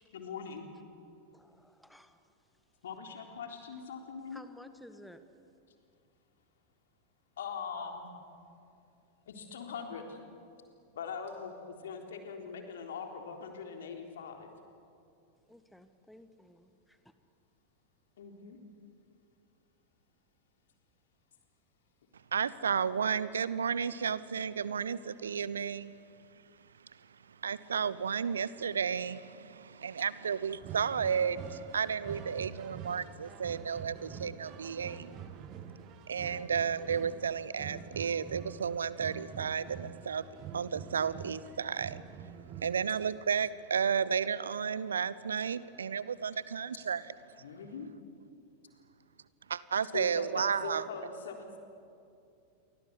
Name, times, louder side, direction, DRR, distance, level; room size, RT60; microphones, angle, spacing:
voice 1, 0.1-0.7 2.8-4.4 7.4-8.1 9.3-10.2 10.9-14.5 18.2-18.6 47.4-47.9 49.9-51.6, left 5 dB, 60° left, 3 dB, 3.7 m, -41 dB
voice 2, 1.3-2.2 4.3-5.2 15.5-17.1, left 1 dB, 5° left, 11 dB, 1.3 m, -54 dB
voice 3, 22.3-25.9 27.4-35.2 36.1-40.2 40.5-42.0 42.6-47.0 49.5-50.8, right 7 dB, 70° right, 18 dB, 0.8 m, -32 dB
sound 1, 30.4-43.1, right 8 dB, 35° right, 1.8 m, -46 dB
28.5 x 24.5 x 8.3 m, 2.5 s
figure-of-eight pair, 90°, 0 cm